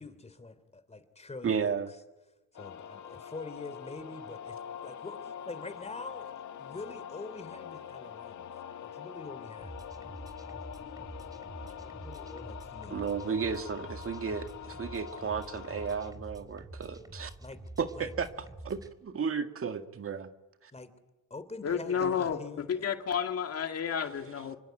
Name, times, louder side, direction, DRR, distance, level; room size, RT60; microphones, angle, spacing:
voice 1, 0.0-2.0 2.5-4.6 4.8-6.3 6.6-8.5 8.8-9.8 11.6-13.0 17.4-17.6 17.9-18.1 20.7-20.9 21.3-22.6, left 3 dB, 20° left, 12 dB, 3.3 m, -45 dB
voice 2, 1.4-1.9 12.9-17.3 17.8-18.3 18.6-20.3 20.6-20.7 22.0-22.1, right 6 dB, 45° right, 7 dB, 2.0 m, -33 dB
sound 1, 2.5-16.1, left 8 dB, 75° left, 2.1 m, -44 dB
sound 2, 9.6-18.9, right 1 dB, 10° right, 3.6 m, -47 dB
voice 3, 21.6-24.6, left 7 dB, 55° left, 6 dB, 2.2 m, -31 dB
26.5 x 24.5 x 9.2 m, 1.0 s
cardioid pair, 90°, 30 cm